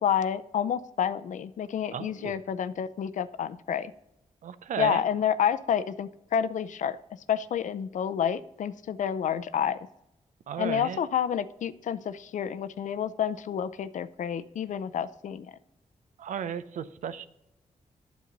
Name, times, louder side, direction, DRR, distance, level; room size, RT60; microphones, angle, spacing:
voice 1, 0.0-3.9 4.8-7.0 7.3-9.8 10.6-15.5, left 8 dB, 75° left, 12 dB, 0.5 m, -29 dB
voice 2, 1.9-2.3 4.4-5.0 10.5-11.0 16.2-17.3, right 8 dB, 80° right, 13 dB, 0.6 m, -34 dB
9.3 x 7.3 x 4.0 m, 0.85 s
cardioid pair, 70°, 13 cm